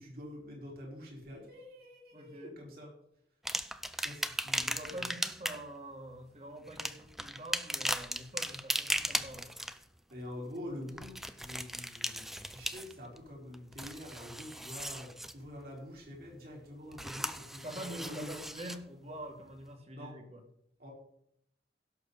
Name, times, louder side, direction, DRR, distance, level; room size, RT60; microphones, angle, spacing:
voice 1, 0.0-2.9 4.0-5.1 10.1-15.1 15.3-18.3 19.9-20.1 20.8-20.9, left 1 dB, 55° right, -2 dB, 4.4 m, -46 dB
voice 2, 2.1-2.6 4.5-9.5 16.8-17.3 17.6-20.4, right 1 dB, 35° right, 4 dB, 2.1 m, -46 dB
sound 1, 3.4-5.7 6.7-9.8 10.9-13.2 13.5-15.4 16.9-18.8 19.6-19.7, equal, ahead, 0.5 m, -37 dB
16.5 x 6.9 x 4.1 m, 0.75 s
head